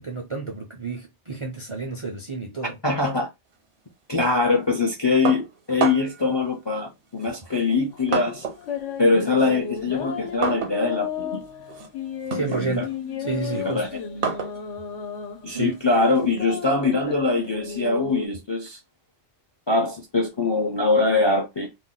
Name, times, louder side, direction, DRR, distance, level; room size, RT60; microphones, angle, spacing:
voice 1, 0.0-2.8 12.3-12.9 13.2-13.8 15.5-15.8, right 4 dB, 40° right, 0.4 m, -30 dB
voice 2, 2.8-3.3 4.1-8.4 9.0-11.4 12.3-12.8 13.5-14.0 15.4-18.8 19.7-21.7, left 3 dB, 35° left, 0.4 m, -23 dB
sound 1, 5.3-6.3 7.2-8.7 9.0-16.3, right 6 dB, 70° right, 1.0 m, -32 dB
sound 2, 7.9-18.3, left 7 dB, 80° left, 1.0 m, -34 dB
2.6 x 2.1 x 3.8 m
omnidirectional pair, 1.2 m